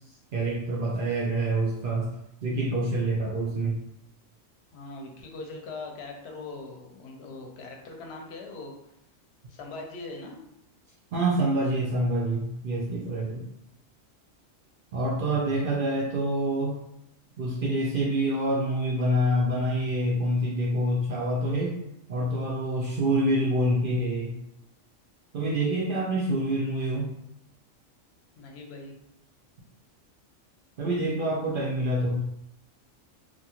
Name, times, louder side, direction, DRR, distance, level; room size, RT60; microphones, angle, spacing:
voice 1, 0.3-2.1 2.4-3.8 11.1-13.5 14.9-16.8 17.4-21.8 22.1-24.4 25.3-27.1 30.8-32.2, right 1 dB, 60° right, -2 dB, 0.6 m, -26 dB
voice 2, 4.7-8.7 9.5-10.4 28.4-29.0, left 3 dB, 65° left, 2 dB, 0.8 m, -41 dB
2.8 x 2.3 x 2.9 m, 0.77 s
omnidirectional pair, 1.3 m